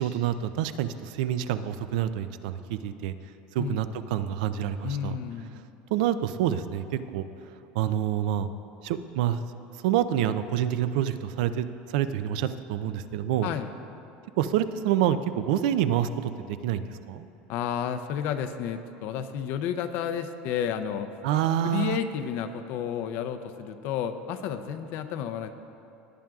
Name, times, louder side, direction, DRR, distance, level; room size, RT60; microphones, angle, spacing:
voice 1, 0.0-3.1 3.5-5.2 5.9-7.2 7.8-8.5 8.8-9.4 9.8-11.7 11.9-13.5 14.4-17.3 21.2-22.0, right 10 dB, 75° right, 12 dB, 0.4 m, -27 dB
voice 2, 4.8-5.6 13.4-13.7 17.5-21.1 21.6-25.5, left 8 dB, 50° left, 9 dB, 0.5 m, -31 dB
18.0 x 8.9 x 2.4 m, 2.8 s
cardioid pair, 170°, 4 cm